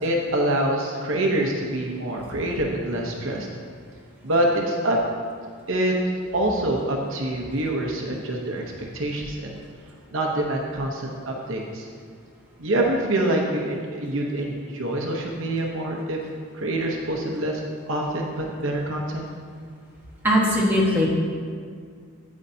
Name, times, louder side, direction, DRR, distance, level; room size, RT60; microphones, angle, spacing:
voice 1, 0.0-3.5 4.2-5.0 5.7-5.9 6.3-8.6 8.9-9.6 10.1-11.9 12.6-16.2 16.5-19.3, right 1 dB, 60° right, 0 dB, 0.9 m, -25 dB
voice 2, 20.2-21.1, equal, 10° right, -5 dB, 1.4 m, -19 dB
9.7 x 8.6 x 2.7 m, 2.1 s
head